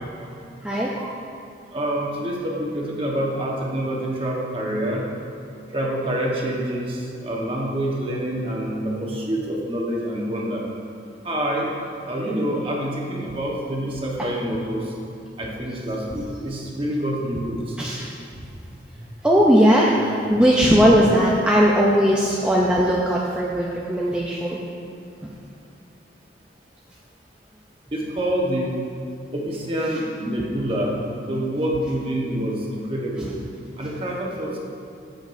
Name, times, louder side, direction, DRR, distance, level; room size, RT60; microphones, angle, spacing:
voice 1, 0.6-1.1 17.8-18.1 19.2-24.6 25.2-25.3, equal, 5° right, -5 dB, 0.5 m, -18 dB
voice 2, 1.7-5.0 5.7-10.6 11.2-11.7 12.0-14.9 15.4-17.7 19.0-19.1 20.6-20.7 27.9-28.8 29.3-33.3 33.8-34.6, right 1 dB, 30° right, -3 dB, 1.1 m, -26 dB
14.0 x 5.1 x 2.6 m, 2.6 s
head